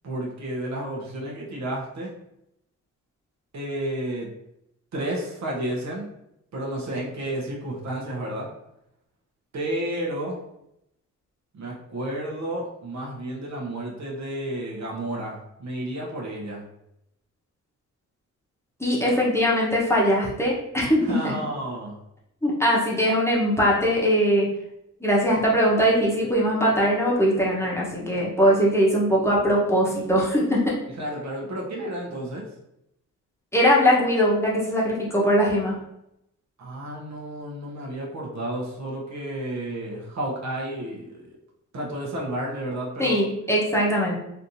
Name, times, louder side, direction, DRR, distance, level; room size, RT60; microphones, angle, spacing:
voice 1, 0.0-2.1 3.5-4.3 4.9-6.1 6.5-8.5 9.5-10.4 11.5-16.6 21.0-22.0 31.0-32.4 36.6-41.4 41.7-43.2, right 1 dB, 55° right, -2 dB, 1.0 m, -31 dB
voice 2, 18.8-21.3 22.4-24.5 25.0-30.7 33.5-35.8 43.0-44.2, equal, 10° left, -5 dB, 1.0 m, -21 dB
3.3 x 2.7 x 2.6 m, 0.82 s
cardioid pair, 75°, 32 cm